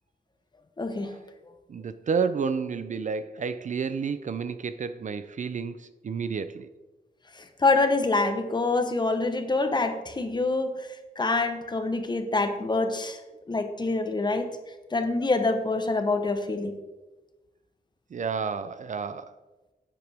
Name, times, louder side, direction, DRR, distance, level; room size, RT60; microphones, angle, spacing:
voice 1, 0.8-1.2 7.3-10.9 11.2-13.2 13.5-14.5 14.9-16.8, left 3 dB, 25° left, 7 dB, 0.9 m, -26 dB
voice 2, 1.7-6.7 18.1-19.3, right 5 dB, 50° right, 12 dB, 0.4 m, -30 dB
11.0 x 7.9 x 3.4 m, 1.1 s
wide cardioid pair, 140°, 17 cm